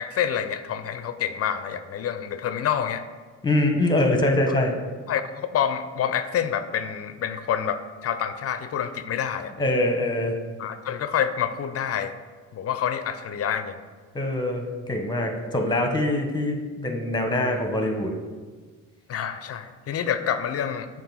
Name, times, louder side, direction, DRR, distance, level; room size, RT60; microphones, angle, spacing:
voice 1, 0.0-3.0 4.5-4.6 5.1-9.5 10.6-12.1 12.5-13.8 19.1-20.9, left 8 dB, 50° left, 9 dB, 0.5 m, -27 dB
voice 2, 3.4-4.7 9.6-10.3 14.1-18.1, left 1 dB, 15° left, 3 dB, 1.0 m, -24 dB
7.3 x 2.6 x 5.5 m, 1.4 s
cardioid pair, 90°, 30 cm